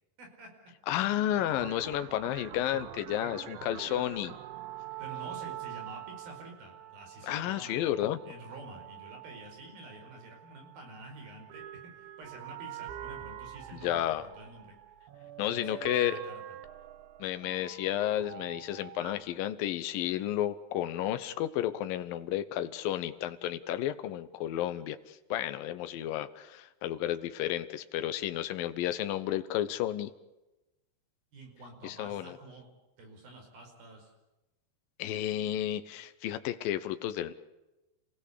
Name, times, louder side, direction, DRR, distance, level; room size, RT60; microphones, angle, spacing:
voice 1, 0.2-0.5 5.0-8.0 8.3-14.8 15.4-16.4 31.3-32.7 33.0-34.1, right 2 dB, 55° right, 3 dB, 6.7 m, -48 dB
voice 2, 0.9-4.4 7.2-8.2 13.7-14.3 15.4-16.2 17.2-30.1 31.8-32.4 35.0-37.3, left 12 dB, 75° left, 10 dB, 2.2 m, -32 dB
sound 1, 1.4-19.1, right 12 dB, 80° right, 3.5 m, -45 dB
29.5 x 16.5 x 8.4 m, 1.0 s
omnidirectional pair, 5.3 m